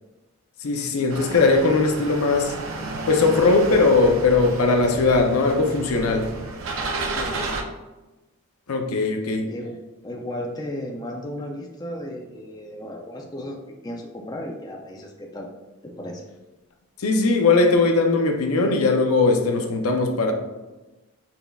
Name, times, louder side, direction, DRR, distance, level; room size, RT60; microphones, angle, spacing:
voice 1, 0.6-2.5 3.1-6.3 8.7-9.5 17.0-20.3, left 3 dB, 80° left, 4 dB, 0.6 m, -19 dB
sound 1, 1.1-7.6, right 3 dB, 65° right, 0.5 m, -32 dB
voice 2, 7.1-7.6 9.5-9.8 10.0-13.6 13.8-15.5 15.8-16.2, left 1 dB, 15° left, 0 dB, 0.4 m, -34 dB
6.0 x 3.4 x 2.3 m, 1.1 s
head